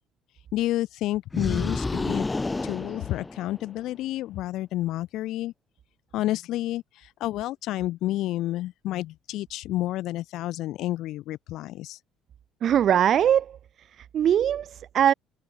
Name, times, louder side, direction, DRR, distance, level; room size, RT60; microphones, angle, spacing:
voice 1, 0.5-2.3 2.6-5.5 6.1-12.0, left 15 dB, 60° left, 1.4 m, -30 dB
sound 1, 1.3-3.8, left 3 dB, 10° left, 1.0 m, -30 dB
voice 2, 12.6-15.1, right 9 dB, 40° right, 0.3 m, -22 dB
cardioid pair, 150°, 0 cm